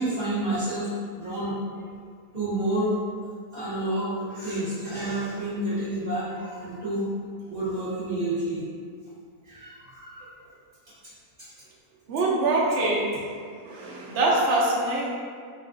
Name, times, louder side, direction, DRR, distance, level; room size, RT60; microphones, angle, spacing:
voice 1, 0.0-1.7 2.3-3.0 3.5-7.1 7.5-8.6 9.4-10.3 11.4-11.5, right 1 dB, 25° right, -13 dB, 1.1 m, -29 dB
voice 2, 12.1-15.1, right 2 dB, 70° right, -4 dB, 0.6 m, -24 dB
3.5 x 2.4 x 2.6 m, 2.1 s
omnidirectional pair, 1.8 m